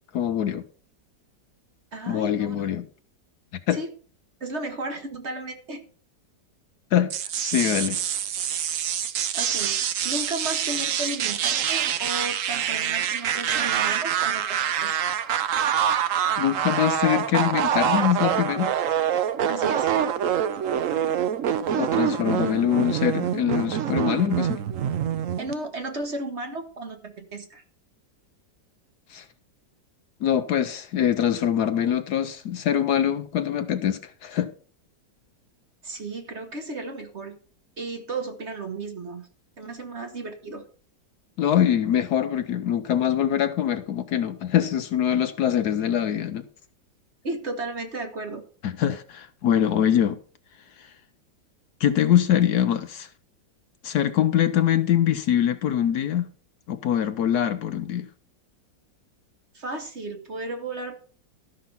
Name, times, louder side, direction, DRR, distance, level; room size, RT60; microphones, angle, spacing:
voice 1, 0.1-0.6 2.1-2.8 3.7-3.8 6.9-7.1 7.4-8.0 16.4-18.7 21.7-24.6 29.1-29.2 30.2-34.5 41.4-46.5 48.6-50.2 50.8-50.9 51.8-53.1 53.8-56.3 56.7-58.1, left 10 dB, 70° left, 1.1 m, -23 dB
voice 2, 1.9-2.7 3.7-3.9 4.4-5.8 9.3-15.2 19.5-19.9 25.4-27.6 35.8-37.4 37.8-39.3 39.6-40.6 47.2-48.4 59.5-61.0, right 2 dB, 40° right, 1.3 m, -34 dB
sound 1, 7.1-25.5, right 9 dB, 60° right, 0.9 m, -25 dB
13.0 x 5.9 x 5.4 m
omnidirectional pair, 2.0 m